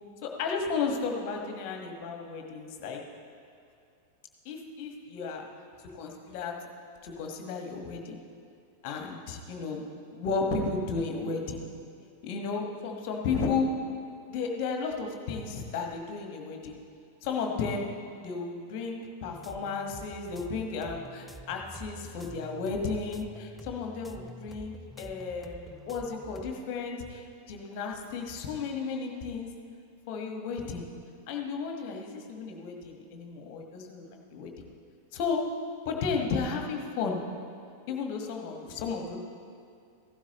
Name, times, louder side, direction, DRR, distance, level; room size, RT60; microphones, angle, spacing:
voice 1, 0.2-3.0 4.4-5.4 5.9-6.6 7.0-8.2 8.8-11.6 12.2-13.7 14.3-16.8 17.2-17.9 18.2-27.2 27.5-29.5 30.1-30.8 31.3-34.5 35.1-35.5 35.8-37.2 37.9-39.2, left 4 dB, 45° left, 2 dB, 1.6 m, -33 dB
sound 1, 19.3-26.5, right 1 dB, 5° left, 0.6 m, -47 dB
16.0 x 12.0 x 3.1 m, 2.4 s
figure-of-eight pair, 90°, 0 cm